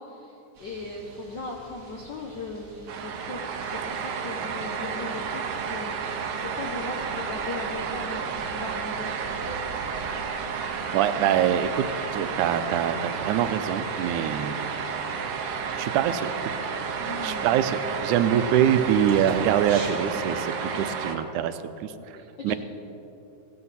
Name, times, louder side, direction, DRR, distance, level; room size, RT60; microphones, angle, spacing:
voice 1, 0.0-5.4 5.7-9.6 17.0-17.6 18.1-18.3 18.7-18.8 21.9-22.5, left 2 dB, 70° left, 0 dB, 1.0 m, -38 dB
sound 1, 0.5-19.9, right 2 dB, 35° right, 2.9 m, -47 dB
sound 2, 2.9-21.2, right 6 dB, 65° right, 1.9 m, -31 dB
voice 2, 10.9-11.9 12.1-14.7 15.8-16.3 17.2-21.9 22.4-22.6, right 9 dB, 85° right, 11 dB, 2.1 m, -24 dB
16.5 x 16.0 x 4.2 m, 3.0 s
omnidirectional pair, 3.4 m